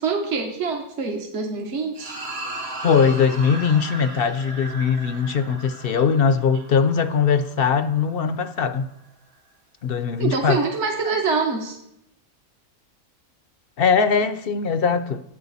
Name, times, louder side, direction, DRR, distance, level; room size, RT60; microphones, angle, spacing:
voice 1, 0.0-2.2 10.2-11.8, right 4 dB, 60° right, 1.4 m, -25 dB
sound 1, 1.9-8.5, right 2 dB, 85° right, 2.3 m, -37 dB
voice 2, 2.8-8.9 9.8-10.6 13.8-15.2, left 6 dB, 55° left, 0.7 m, -20 dB
14.5 x 8.8 x 4.1 m
omnidirectional pair, 1.4 m